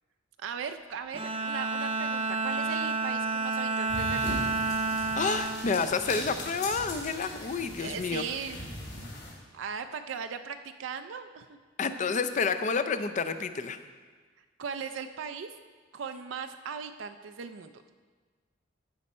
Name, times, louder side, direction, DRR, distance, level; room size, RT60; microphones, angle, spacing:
voice 1, 0.4-4.4 7.8-8.6 9.5-11.6 14.4-15.5 15.9-17.9, right 6 dB, 80° right, 8 dB, 0.4 m, -38 dB
Bowed string instrument, 1.1-6.7, right 3 dB, 30° right, 0.6 m, -31 dB
sound 1, 3.9-9.3, left 1 dB, 65° left, 3.2 m, -39 dB
voice 2, 5.2-8.2 11.8-13.8, left 5 dB, 40° left, 9 dB, 0.5 m, -29 dB
15.0 x 5.4 x 4.2 m, 1.5 s
head